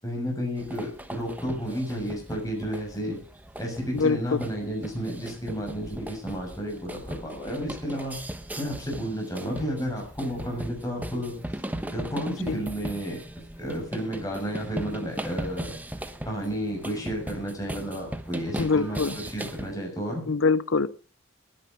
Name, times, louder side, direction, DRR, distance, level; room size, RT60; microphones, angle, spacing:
voice 1, 0.0-3.2 3.6-8.2 8.6-11.4 11.9-13.2 13.6-15.7 16.2-20.2, equal, 15° left, 1 dB, 6.6 m, -32 dB
sound 1, 0.6-19.7, right 1 dB, 10° right, 1.0 m, -38 dB
voice 2, 18.6-19.2 20.3-20.9, left 4 dB, 70° left, 17 dB, 0.7 m, -23 dB
20.0 x 9.9 x 5.4 m, 0.38 s
head